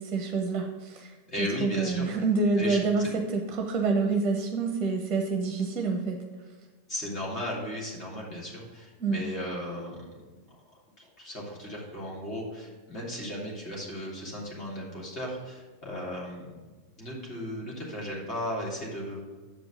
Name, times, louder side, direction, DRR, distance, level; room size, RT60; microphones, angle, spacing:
voice 1, 0.0-1.1 1.4-6.2 9.0-9.2, right 4 dB, 25° right, 3 dB, 1.0 m, -27 dB
voice 2, 1.3-2.1 2.6-2.8 6.9-10.1 11.0-16.7 17.0-19.2, left 1 dB, 30° left, -4 dB, 2.9 m, -36 dB
7.4 x 5.1 x 6.3 m, 1.4 s
figure-of-eight pair, 90°, 0 cm